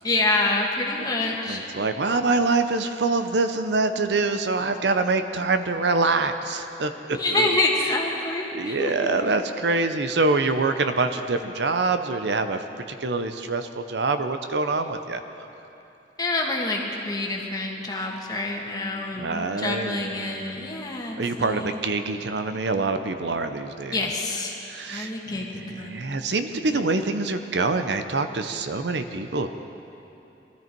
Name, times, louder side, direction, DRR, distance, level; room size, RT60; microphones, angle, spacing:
voice 1, 0.0-1.6 7.1-9.3 16.2-21.8 23.9-24.6 24.8-26.3 26.7-26.8, left 2 dB, 20° left, -1 dB, 1.7 m, -27 dB
voice 2, 1.5-7.5 8.5-12.6 13.0-15.2 19.2-20.7 21.2-24.0 24.6-29.5, right 3 dB, 65° right, 9 dB, 0.7 m, -25 dB
21.5 x 13.5 x 4.6 m, 2.9 s
head